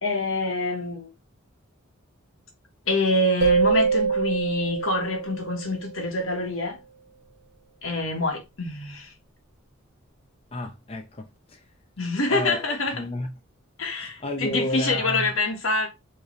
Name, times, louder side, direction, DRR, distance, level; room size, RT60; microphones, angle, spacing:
voice 1, 0.0-1.1 2.9-6.8 7.8-9.1 12.0-13.0 13.8-15.9, left 2 dB, 80° left, 1.5 m, -26 dB
sound 1, 3.4-6.0, right 5 dB, 65° right, 0.9 m, -24 dB
voice 2, 10.5-11.6 12.3-13.3 14.0-15.3, left 1 dB, 30° left, 0.6 m, -31 dB
4.6 x 3.3 x 3.2 m
head